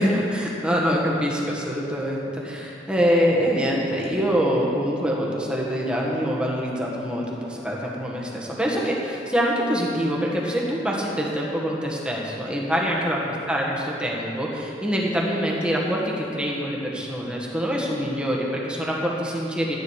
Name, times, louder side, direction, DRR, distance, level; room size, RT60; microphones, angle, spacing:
voice 1, 0.0-13.2 13.5-19.8, equal, 5° right, -3 dB, 1.6 m, -25 dB
13.5 x 9.2 x 4.9 m, 2.8 s
head